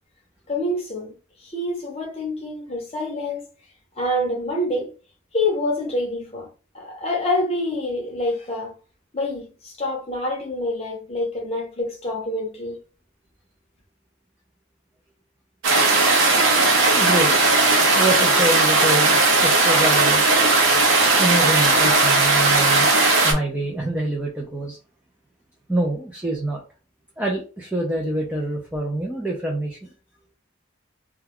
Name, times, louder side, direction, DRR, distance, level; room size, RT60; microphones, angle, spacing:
voice 1, 0.5-1.1 1.4-3.5 4.0-4.9 5.3-6.5 6.7-8.7 9.1-12.8, left 1 dB, 30° left, 0.7 m, -26 dB
sound 1, 15.6-23.3, right 3 dB, 80° right, 0.7 m, -17 dB
voice 2, 16.9-17.4 17.9-20.3 21.2-22.9 23.2-24.8 25.7-26.6 27.2-29.9, right 1 dB, 5° right, 0.4 m, -26 dB
2.2 x 2.2 x 3.5 m
head